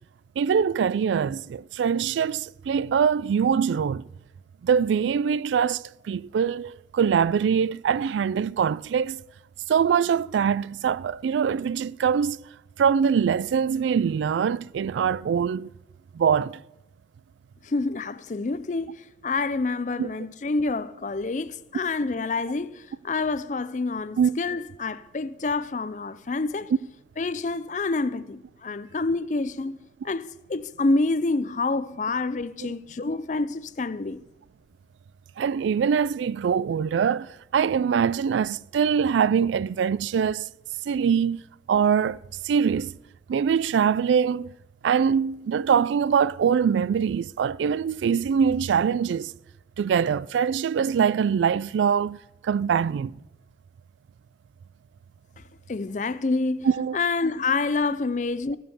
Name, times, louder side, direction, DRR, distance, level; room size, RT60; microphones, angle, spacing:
voice 1, 0.4-4.1 4.6-9.2 9.7-12.4 12.8-15.7 16.1-16.6 20.0-20.1 24.2-24.3 35.4-40.5 40.9-41.4 41.7-42.9 43.3-44.5 44.8-49.3 49.8-52.2 52.4-53.2 56.7-57.0, right 7 dB, 85° right, 0.3 m, -23 dB
voice 2, 17.6-26.7 27.2-34.2 55.4-55.5 55.7-58.6, left 3 dB, 40° left, 0.4 m, -28 dB
16.0 x 5.5 x 7.0 m
head